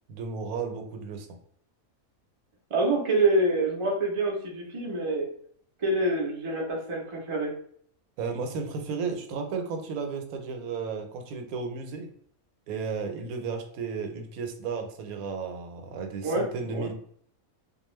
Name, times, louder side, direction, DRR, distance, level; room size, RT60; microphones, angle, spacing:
voice 1, 0.1-1.3 8.2-12.1 12.7-16.9, right 5 dB, 85° right, 5 dB, 1.0 m, -33 dB
voice 2, 2.7-5.3 5.8-7.6 16.2-16.9, right 2 dB, 50° right, -1 dB, 0.3 m, -26 dB
2.5 x 2.3 x 3.0 m, 0.62 s
omnidirectional pair, 1.5 m